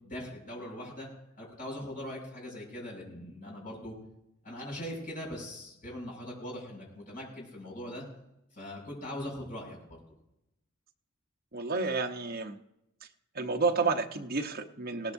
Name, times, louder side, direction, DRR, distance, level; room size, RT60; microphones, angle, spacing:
voice 1, 0.0-1.1 1.4-3.9 4.4-8.0 8.5-10.0, left 1 dB, 45° left, -3 dB, 6.6 m, -41 dB
voice 2, 11.5-12.5 13.3-15.1, right 4 dB, 50° right, 4 dB, 0.9 m, -30 dB
19.0 x 18.0 x 2.7 m, 0.86 s
head